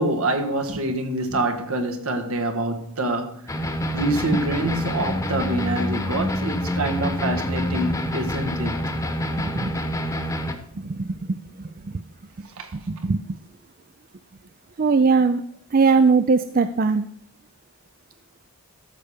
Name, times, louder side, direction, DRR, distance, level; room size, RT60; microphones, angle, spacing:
voice 1, 0.0-3.5 3.9-8.7 12.6-12.7, right 1 dB, 75° right, 1.5 m, -26 dB
sound 1, 3.5-10.5, left 1 dB, 15° left, 1.0 m, -26 dB
voice 2, 12.9-13.2 14.8-15.4 15.7-17.0, right 4 dB, 40° right, 0.4 m, -19 dB
13.0 x 7.0 x 5.0 m
head